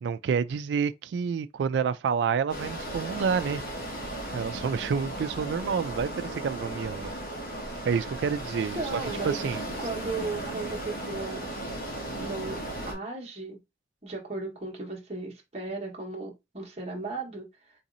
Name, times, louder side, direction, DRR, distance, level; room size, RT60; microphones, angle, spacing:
voice 1, 0.0-3.6 4.3-7.1 7.8-9.6, right 6 dB, 85° right, 0.3 m, -29 dB
sound 1, 2.5-12.9, right 1 dB, 55° left, 1.4 m, -36 dB
voice 2, 8.7-9.4 9.8-11.5 12.1-13.6 14.0-17.5, right 3 dB, 35° right, 1.2 m, -36 dB
3.9 x 2.8 x 2.5 m
head